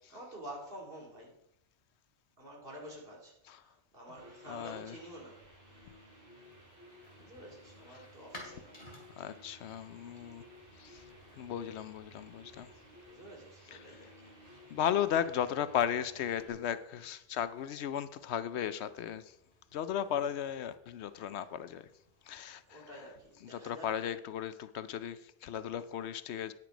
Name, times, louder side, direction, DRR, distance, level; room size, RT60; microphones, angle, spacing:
voice 1, 0.1-1.3 2.4-6.0 7.1-8.8 13.0-14.3 22.7-23.9, right 1 dB, 55° right, 2.7 m, -49 dB
sound 1, 4.2-16.5, equal, 15° right, 2.9 m, -57 dB
voice 2, 4.5-4.9 9.2-10.4 10.8-11.0 11.4-12.7 13.7-13.8 14.7-19.2 19.7-21.8 22.3-22.8 23.5-26.5, left 9 dB, 75° left, 0.9 m, -35 dB
sound 2, 6.4-24.1, left 1 dB, 30° left, 3.1 m, -60 dB
9.5 x 7.5 x 5.1 m
omnidirectional pair, 1.2 m